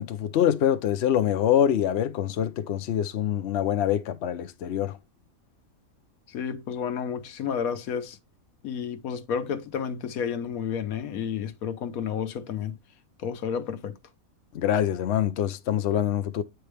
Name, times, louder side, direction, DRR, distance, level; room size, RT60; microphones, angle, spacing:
voice 1, 0.0-4.9 14.5-16.4, left 10 dB, 60° left, 0.8 m, -25 dB
voice 2, 6.3-8.2 8.6-12.8 13.2-14.0, left 7 dB, 80° left, 1.2 m, -31 dB
8.7 x 4.5 x 3.4 m
omnidirectional pair, 1.5 m